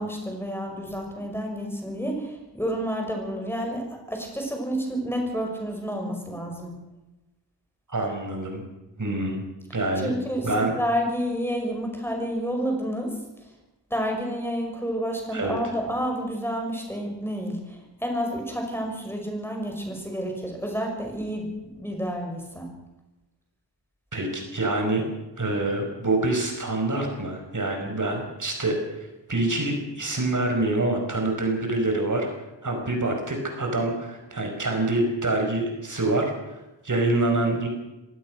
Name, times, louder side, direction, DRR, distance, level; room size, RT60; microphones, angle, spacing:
voice 1, 0.0-6.8 10.0-13.2 13.9-22.7, equal, 5° left, 2 dB, 6.1 m, -30 dB
voice 2, 7.9-8.6 9.0-9.4 9.7-10.1 10.4-10.7 15.3-15.6 24.1-25.0 25.4-32.3 32.6-37.7, right 2 dB, 45° right, 3 dB, 5.2 m, -26 dB
23.5 x 18.0 x 6.2 m, 1.0 s
wide cardioid pair, 100°, 43 cm